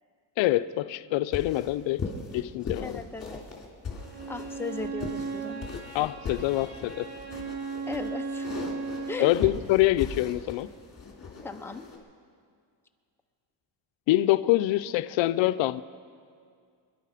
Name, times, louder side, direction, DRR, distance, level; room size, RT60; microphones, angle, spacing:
voice 1, 0.4-3.0 5.9-7.1 9.2-10.7 14.1-15.8, left 16 dB, 90° left, 0.6 m, -25 dB
sound 1, 1.3-12.0, left 4 dB, 35° left, 2.9 m, -39 dB
voice 2, 2.8-3.4 4.3-5.7 7.9-8.7 9.1-9.3 11.4-11.8, left 3 dB, 5° left, 0.7 m, -37 dB
Bowed string instrument, 3.9-9.3, right 4 dB, 55° right, 2.3 m, -36 dB
25.0 x 11.0 x 5.0 m
cardioid pair, 130°, 44 cm